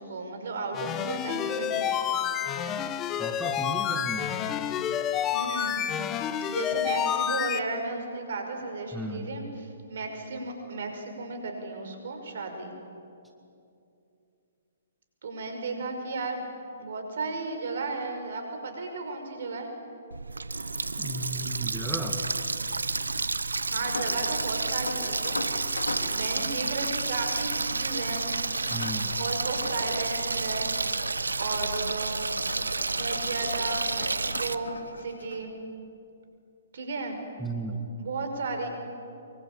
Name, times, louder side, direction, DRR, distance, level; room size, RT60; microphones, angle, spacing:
voice 1, 0.0-2.1 5.3-5.8 6.4-12.7 15.2-16.5 16.8-19.7 23.7-25.8 26.1-28.3 29.2-30.8 31.4-32.3 32.9-35.5 36.7-37.2 38.0-38.7, right 3 dB, 60° right, 5 dB, 5.4 m, -34 dB
sound 1, 0.7-7.6, left 9 dB, 20° left, 1.1 m, -29 dB
voice 2, 3.2-4.3 8.9-9.3 21.0-22.2 28.7-29.1 37.4-37.8, right 2 dB, 5° right, 1 dB, 2.0 m, -35 dB
Water tap faucet, 20.1-34.6, right 3 dB, 85° right, 0.9 m, -30 dB
sound 2, 23.5-35.4, left 3 dB, 80° left, 2.9 m, -42 dB
24.5 x 23.5 x 8.8 m, 2.6 s
hypercardioid pair, 130°, 0 cm